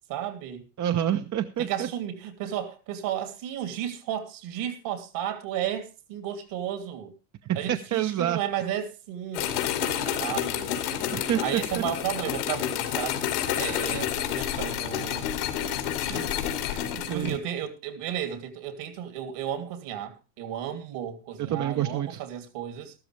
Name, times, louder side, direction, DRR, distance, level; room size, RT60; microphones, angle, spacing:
voice 1, 0.1-0.7 1.6-7.1 7.5-9.6 10.2-10.7 11.4-15.3 15.6-16.3 16.7-22.9, right 10 dB, 65° right, 3.0 m, -33 dB
voice 2, 0.8-1.9 7.4-8.4 9.8-10.2 11.1-11.8 17.1-17.4 21.4-22.2, right 11 dB, 40° right, 1.0 m, -28 dB
sound 1, 9.3-17.4, left 10 dB, 80° left, 2.6 m, -29 dB
13.5 x 13.0 x 3.3 m
hypercardioid pair, 90°, 45 cm